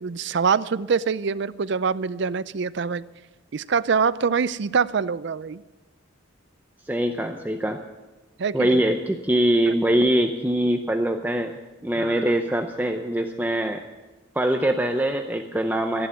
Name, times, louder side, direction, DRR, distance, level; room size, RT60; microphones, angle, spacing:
voice 1, 0.0-3.0 3.5-5.6 8.4-8.8 9.7-9.8 12.0-12.2, right 5 dB, 60° right, 16 dB, 0.5 m, -24 dB
voice 2, 6.9-7.8 8.5-11.6 11.8-13.8 14.4-16.1, right 1 dB, 10° right, 5 dB, 0.6 m, -23 dB
13.5 x 11.0 x 7.0 m, 1.2 s
head